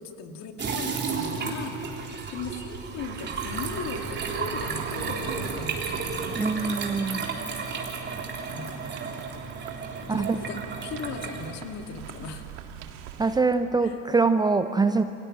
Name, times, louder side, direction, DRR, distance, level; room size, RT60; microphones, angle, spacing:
voice 1, 0.0-5.8 8.5-8.8 10.0-10.6 10.8-12.4 13.8-14.0, left 6 dB, 40° left, 5 dB, 2.6 m, -38 dB
sound 1, 0.6-11.5, right 5 dB, 25° right, 3.8 m, -33 dB
sound 2, 3.0-13.4, right 10 dB, 50° right, 2.1 m, -43 dB
voice 2, 6.3-7.3 10.1-10.4 13.2-15.0, right 4 dB, 10° right, 10 dB, 0.8 m, -24 dB
28.5 x 23.5 x 8.9 m, 2.5 s
figure-of-eight pair, 70°, 39 cm